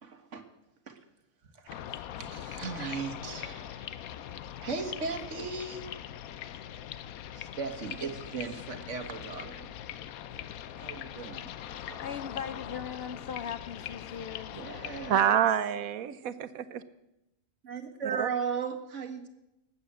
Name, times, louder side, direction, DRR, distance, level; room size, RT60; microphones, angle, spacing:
voice 1, 0.0-0.4 0.9-1.0 1.5-4.3 4.6-5.8 7.3-9.7 10.8-12.0 14.5-15.4 17.6-19.3, right 5 dB, 60° right, 6 dB, 1.9 m, -37 dB
sound 1, 1.7-15.1, left 10 dB, 90° left, 1.1 m, -42 dB
voice 2, 12.0-14.6, left 7 dB, 55° left, 11 dB, 0.7 m, -39 dB
voice 3, 15.1-16.8 18.2-18.3, right 9 dB, 80° right, 14 dB, 1.3 m, -27 dB
19.0 x 7.9 x 7.5 m, 0.89 s
omnidirectional pair, 1.5 m